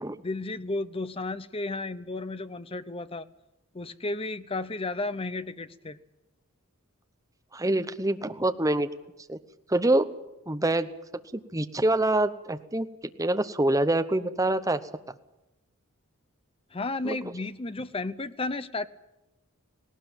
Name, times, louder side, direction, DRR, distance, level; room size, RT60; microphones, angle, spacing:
voice 1, 0.2-3.3 3.7-6.0 16.7-18.9, left 2 dB, 25° left, 13 dB, 0.7 m, -33 dB
voice 2, 7.5-8.9 9.3-9.4 9.7-10.1 10.5-10.9 11.3-12.9 13.2-14.8 17.0-17.1, right 1 dB, 15° right, 9 dB, 0.9 m, -25 dB
18.5 x 18.5 x 8.9 m, 0.94 s
head